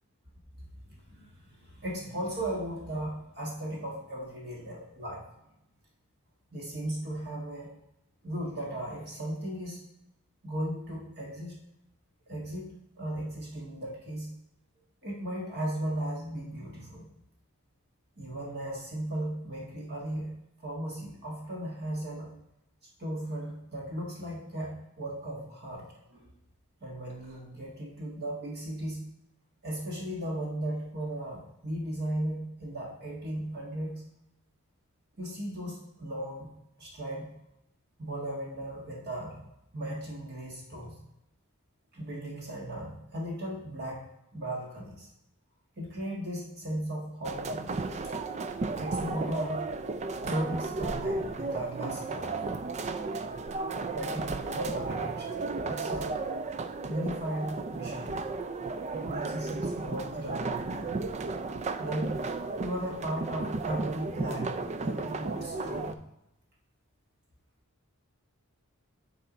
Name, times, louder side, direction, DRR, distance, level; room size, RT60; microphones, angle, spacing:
voice 1, 0.6-5.2 6.5-7.7 8.2-9.8 10.4-11.5 12.3-14.3 15.0-17.1 18.2-20.3 20.6-22.3 23.0-26.3 26.8-29.0 29.6-34.0 35.2-36.5 36.8-37.3 38.0-39.4 39.7-40.9 41.9-44.1 44.3-45.1 45.8-47.8 48.0-48.1 48.8-49.6 50.2-52.4 53.9-55.4 55.6-56.1 56.9-58.2 58.9-60.9 61.8-62.1 62.6-66.0, right 1 dB, 50° right, -2 dB, 1.5 m, -36 dB
sound 1, 47.2-65.9, right 3 dB, 30° right, 0.4 m, -34 dB
9.2 x 4.2 x 5.0 m, 0.86 s
head